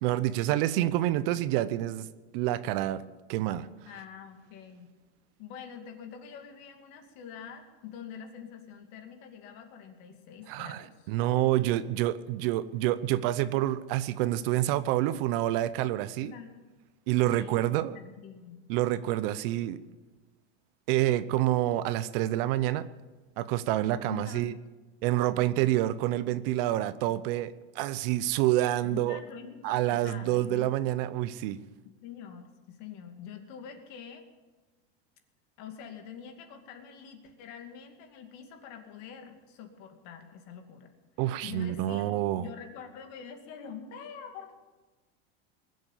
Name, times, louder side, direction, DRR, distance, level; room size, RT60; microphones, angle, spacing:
voice 1, 0.0-2.1 2.3-3.0 3.3-3.7 10.5-16.3 17.1-18.0 18.7-19.8 20.9-22.9 23.4-24.5 25.0-29.2 29.6-31.6 41.2-42.4, right 14 dB, 60° right, 15 dB, 0.8 m, -28 dB
voice 2, 3.8-4.9 5.4-11.1 16.2-16.7 17.3-18.6 24.1-24.6 27.1-27.2 28.8-30.7 32.0-34.2 35.6-40.9 41.4-44.5, left 7 dB, 55° left, 5 dB, 2.5 m, -45 dB
20.5 x 7.9 x 7.3 m, 1.2 s
supercardioid pair, 145°, 33 cm